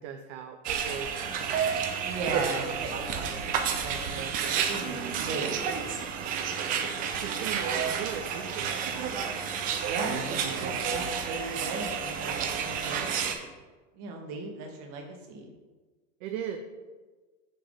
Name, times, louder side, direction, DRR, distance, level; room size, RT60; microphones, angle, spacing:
voice 1, 0.0-1.5 7.0-9.1 16.2-16.6, right 8 dB, 60° right, 6 dB, 0.6 m, -38 dB
sound 1, 0.6-13.3, right 7 dB, 20° right, 0.3 m, -31 dB
voice 2, 2.0-5.9 6.1-7.1 9.8-13.5 13.9-15.5, right 4 dB, 45° right, 2 dB, 1.4 m, -38 dB
5.9 x 3.3 x 5.1 m, 1.3 s
hypercardioid pair, 120°, 43 cm